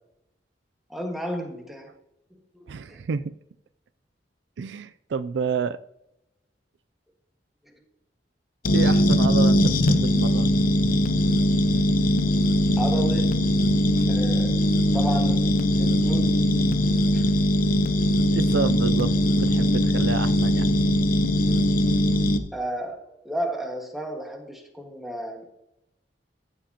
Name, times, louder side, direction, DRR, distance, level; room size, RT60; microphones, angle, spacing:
voice 1, 0.9-1.9 2.3-3.0 7.6-7.8 12.8-13.4 14.1-14.6 14.9-16.4 17.1-17.3 22.5-25.5, right 1 dB, ahead, 1 dB, 1.6 m, -33 dB
voice 2, 2.7-3.3 4.6-5.8 8.7-10.5 14.0-14.1 18.1-20.7, right 5 dB, 75° right, 14 dB, 0.4 m, -29 dB
sound 1, 8.6-22.4, left 1 dB, 50° left, 0.7 m, -21 dB
14.0 x 7.2 x 2.9 m, 0.85 s
head